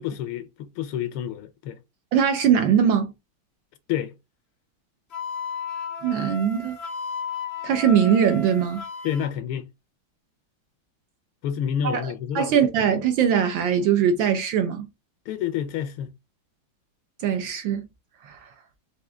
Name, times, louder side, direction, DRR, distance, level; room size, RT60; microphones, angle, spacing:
voice 1, 0.0-1.8 3.9-4.1 9.0-9.7 11.4-12.5 15.3-16.1, left 9 dB, 80° left, 1.4 m, -29 dB
voice 2, 2.1-3.1 6.0-6.8 7.6-8.8 11.8-14.9 17.2-17.8 18.2-18.5, right 8 dB, 75° right, 1.2 m, -21 dB
Wind instrument woodwind instrument, 5.1-9.3, left 5 dB, 55° left, 0.7 m, -34 dB
4.8 x 2.5 x 3.3 m
omnidirectional pair, 2.4 m